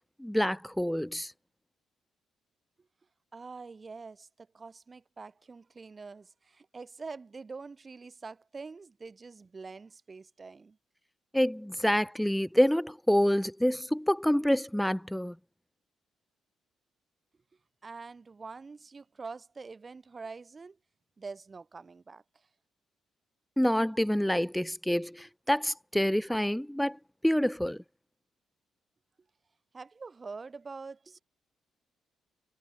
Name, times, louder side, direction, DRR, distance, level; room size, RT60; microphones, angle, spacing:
voice 1, 0.2-1.3 11.3-15.4 23.6-27.0 27.2-27.8, equal, 5° left, 1.0 m, -27 dB
voice 2, 3.3-10.8 17.8-20.8 21.2-22.5 29.7-31.2, right 4 dB, 35° right, 6.4 m, -45 dB
supercardioid pair, 70°, 0 cm